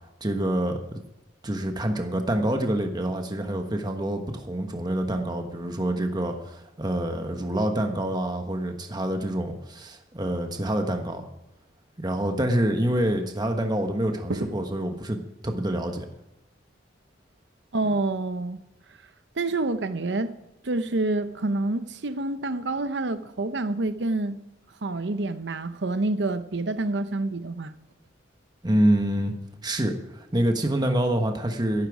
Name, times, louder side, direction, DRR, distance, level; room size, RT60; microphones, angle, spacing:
voice 1, 0.2-1.0 1.4-11.2 12.0-16.1 28.6-29.3 29.6-31.9, right 1 dB, 20° right, 1.2 m, -26 dB
voice 2, 17.7-18.6 19.4-20.3 20.6-24.4 24.8-27.7, right 2 dB, 65° right, 0.7 m, -27 dB
13.5 x 12.0 x 4.9 m
head